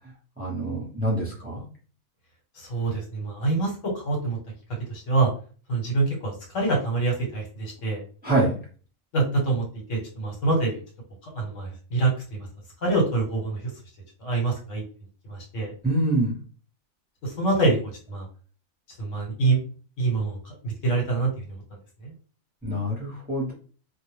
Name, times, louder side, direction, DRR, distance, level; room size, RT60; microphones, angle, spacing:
voice 1, 0.4-1.6 8.2-8.5 15.8-16.3 22.6-23.5, right 1 dB, 10° right, -4 dB, 0.7 m, -25 dB
voice 2, 2.6-4.4 4.9-5.3 5.7-8.0 9.1-9.6 9.9-10.8 11.2-12.5 12.8-13.6 14.2-14.8 15.3-15.7 17.2-17.8 18.1-18.3 19.0-19.6 20.0-21.3 22.0-22.1, right 3 dB, 65° left, 0 dB, 1.2 m, -25 dB
2.4 x 2.1 x 3.1 m, 0.40 s
omnidirectional pair, 1.4 m